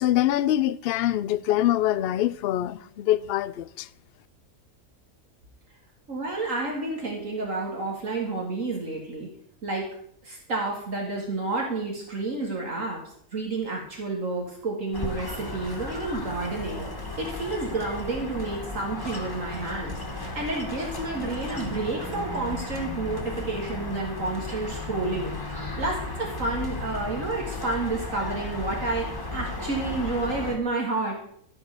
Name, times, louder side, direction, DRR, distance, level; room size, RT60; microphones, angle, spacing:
voice 1, 0.0-3.9, left 13 dB, 70° left, 0.5 m, -24 dB
voice 2, 6.1-9.3 9.6-9.8 10.2-13.0 13.3-16.9 17.2-25.3 25.8-31.1, right 3 dB, 65° right, 2.3 m, -30 dB
sound 1, 14.9-30.6, left 2 dB, 15° left, 1.2 m, -34 dB
13.5 x 4.8 x 6.7 m
omnidirectional pair, 1.5 m